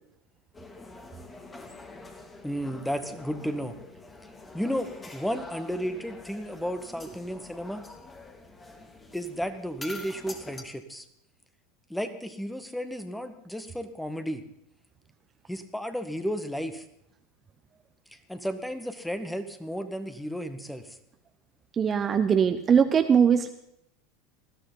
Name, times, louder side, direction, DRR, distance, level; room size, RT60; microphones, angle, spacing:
sound 1, 0.5-10.6, left 2 dB, 20° left, 2.8 m, -46 dB
voice 1, 2.4-3.8 4.5-7.8 9.1-11.0 11.9-14.4 15.5-16.8 18.3-21.0, equal, 5° left, 9 dB, 1.8 m, -33 dB
voice 2, 21.8-23.5, right 7 dB, 30° right, 8 dB, 1.0 m, -21 dB
20.0 x 14.5 x 4.0 m, 0.76 s
hypercardioid pair, 85°, 0 cm